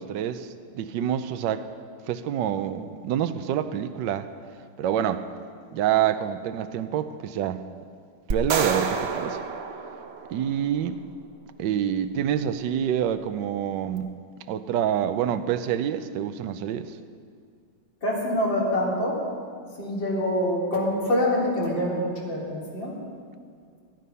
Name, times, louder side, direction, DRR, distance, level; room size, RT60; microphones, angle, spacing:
voice 1, 0.0-1.7 2.1-4.3 4.8-5.3 5.7-7.7 8.3-9.4 10.3-11.0 11.6-14.2 14.5-16.9, right 10 dB, 70° right, 10 dB, 1.3 m, -27 dB
sound 1, 8.3-10.7, right 5 dB, 50° right, 0.7 m, -29 dB
voice 2, 18.0-19.2 19.8-23.0, left 1 dB, 70° left, -4 dB, 4.0 m, -25 dB
19.5 x 12.5 x 5.5 m, 2.1 s
omnidirectional pair, 2.1 m